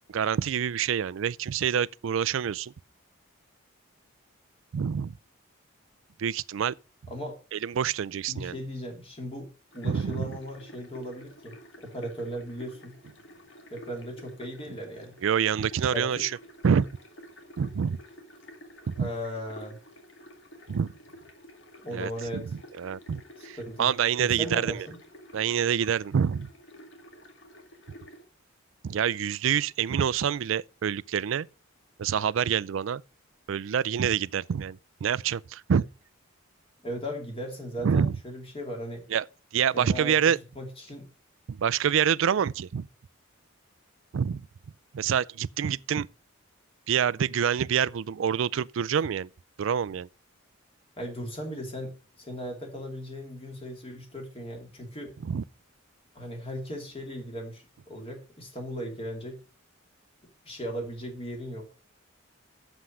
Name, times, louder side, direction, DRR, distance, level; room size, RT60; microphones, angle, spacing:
voice 1, 0.1-2.7 4.7-5.2 6.2-6.7 7.5-8.5 9.8-10.3 15.2-16.3 16.6-16.9 17.6-18.0 18.9-19.1 20.7-20.9 21.9-22.4 22.8-24.9 25.3-26.5 28.8-31.5 32.0-33.0 33.5-35.9 37.8-38.2 39.1-39.3 39.5-40.4 41.5-42.9 44.1-44.4 44.9-46.1 46.9-49.3 49.6-50.1 55.2-55.4, right 8 dB, 70° right, 0.4 m, -26 dB
voice 2, 7.1-7.4 8.3-9.5 9.7-12.9 13.7-15.2 15.9-16.3 19.0-19.8 21.8-22.4 23.4-23.9 24.2-25.0 36.8-39.0 39.7-40.1 40.5-41.1 51.0-55.1 56.1-59.4 60.4-61.8, equal, 25° left, 2.9 m, -37 dB
sound 1, 9.7-28.2, left 1 dB, 60° left, 2.0 m, -50 dB
7.8 x 7.1 x 6.2 m
head